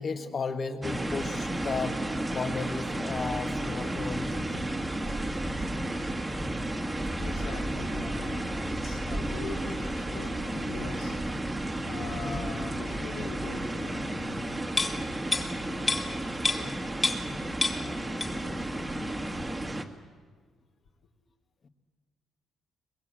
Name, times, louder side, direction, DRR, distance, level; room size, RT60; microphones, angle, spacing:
voice 1, 0.0-2.0 2.2-4.7 21.6-21.7, left 4 dB, 45° left, 8 dB, 1.7 m, -34 dB
sound 1, 0.8-19.8, right 1 dB, 15° right, 1.8 m, -32 dB
voice 2, 6.8-15.1 15.5-16.9 17.8-19.5, left 5 dB, 80° left, 0 dB, 3.9 m, -43 dB
sound 2, 14.8-17.4 17.6-18.6 18.9-19.0, left 2 dB, 25° left, 2.0 m, -30 dB
22.0 x 22.0 x 7.7 m, 1.5 s
cardioid pair, 90°, 0 cm